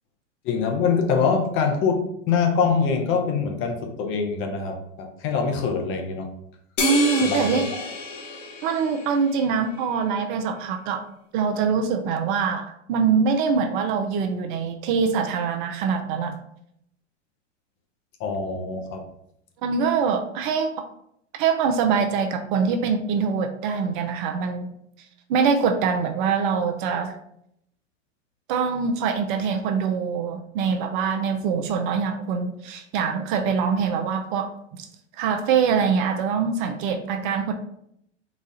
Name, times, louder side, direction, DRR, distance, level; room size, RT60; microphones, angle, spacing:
voice 1, 0.4-6.3 7.2-7.9 18.2-19.0, left 5 dB, 35° left, 4 dB, 0.7 m, -24 dB
sound 1, 6.8-9.5, left 3 dB, 75° left, 1.2 m, -29 dB
voice 2, 6.8-7.7 8.6-11.0 11.3-16.4 19.6-20.7 21.4-24.7 25.3-27.2 28.5-34.9 35.2-37.5, right 6 dB, 40° right, 6 dB, 0.5 m, -24 dB
4.1 x 2.4 x 4.1 m, 0.73 s
hypercardioid pair, 115°, 38 cm